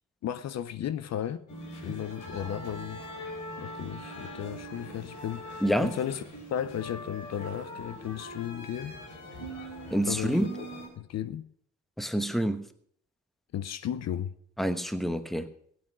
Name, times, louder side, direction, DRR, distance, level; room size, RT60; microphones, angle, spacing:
voice 1, 0.2-1.4 1.8-6.2 6.5-9.0 10.1-10.7 11.0-11.5 13.5-14.3, left 10 dB, 60° left, 0.7 m, -35 dB
sound 1, 1.5-10.9, equal, 90° left, 4.3 m, -41 dB
voice 2, 5.6-6.0 9.9-10.5 12.0-12.7 14.6-15.5, equal, ahead, 1.1 m, -27 dB
16.5 x 9.0 x 6.2 m
cardioid pair, 90°, 30 cm